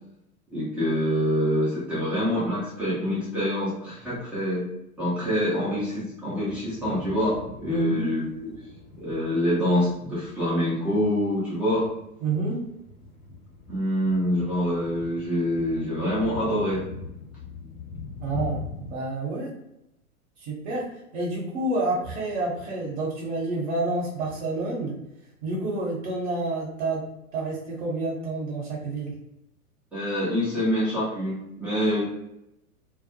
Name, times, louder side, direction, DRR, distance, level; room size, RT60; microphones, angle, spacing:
voice 1, 0.5-4.6 5.0-8.5 9.0-11.9 13.7-16.8 29.9-32.0, equal, 5° right, -11 dB, 0.3 m, -26 dB
sound 1, 6.5-18.9, left 4 dB, 60° left, 0.9 m, -42 dB
voice 2, 7.7-8.1 12.2-12.6 18.2-19.5 20.4-20.8 21.1-24.9 25.4-27.0 27.3-29.1, right 2 dB, 50° right, -5 dB, 0.8 m, -29 dB
2.2 x 2.0 x 2.8 m, 0.83 s
figure-of-eight pair, 95°, 45 cm